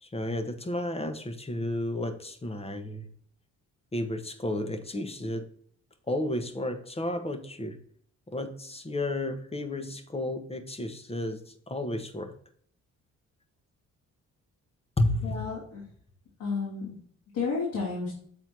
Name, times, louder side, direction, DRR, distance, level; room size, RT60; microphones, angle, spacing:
voice 1, 0.0-3.1 3.9-5.5 6.1-7.8 8.3-12.3 15.0-15.5, left 1 dB, 20° left, 8 dB, 1.0 m, -32 dB
voice 2, 15.2-15.8 16.4-16.9 17.3-18.1, left 4 dB, 90° left, -7 dB, 2.8 m, -31 dB
7.6 x 4.0 x 4.6 m, 0.62 s
cardioid pair, 90°, 30 cm